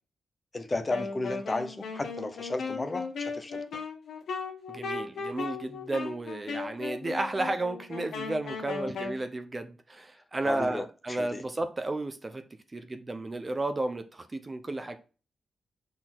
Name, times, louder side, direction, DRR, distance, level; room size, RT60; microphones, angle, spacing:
voice 1, 0.5-3.6 10.4-11.4, left 2 dB, 20° left, 0.8 m, -34 dB
Wind instrument woodwind instrument, 0.9-9.2, left 4 dB, 80° left, 1.6 m, -37 dB
voice 2, 4.7-12.4 12.7-15.0, right 2 dB, 20° right, 0.6 m, -33 dB
6.5 x 3.9 x 6.0 m
wide cardioid pair, 160°, 0 cm